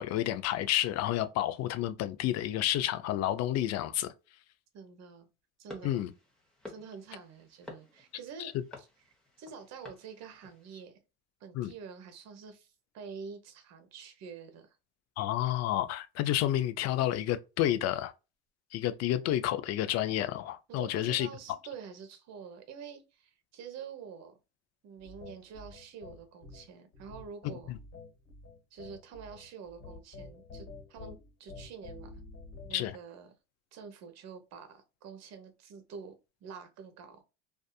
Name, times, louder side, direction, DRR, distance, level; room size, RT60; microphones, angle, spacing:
voice 1, 0.0-4.1 5.8-6.1 8.4-8.5 11.5-11.7 15.2-18.1 18.7-21.3 27.7-27.8 32.7-32.9, left 12 dB, 55° left, 0.5 m, -30 dB
voice 2, 4.7-5.3 5.6-6.1 6.7-8.9 9.4-11.0 11.4-14.8 20.7-24.4 24.8-27.8 28.7-32.2 32.7-33.3 33.7-36.1 36.4-37.2, right 6 dB, 60° right, 0.9 m, -47 dB
sound 1, 5.7-10.8, left 1 dB, ahead, 1.0 m, -52 dB
sound 2, 25.0-32.9, left 3 dB, 40° left, 1.3 m, -49 dB
2.6 x 2.4 x 2.3 m
supercardioid pair, 105°, 31 cm